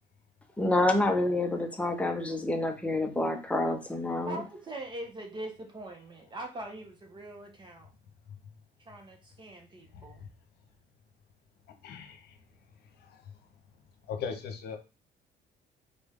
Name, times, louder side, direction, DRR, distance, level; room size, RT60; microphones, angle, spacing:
voice 1, 0.6-4.4, left 2 dB, 5° left, 4 dB, 0.9 m, -28 dB
voice 2, 4.2-7.9 8.8-10.2, right 1 dB, 25° right, 3 dB, 1.3 m, -42 dB
voice 3, 9.9-10.3 11.7-13.5 14.0-14.8, left 6 dB, 70° left, 6 dB, 1.0 m, -41 dB
4.0 x 3.3 x 3.7 m, 0.30 s
cardioid pair, 110°, 17 cm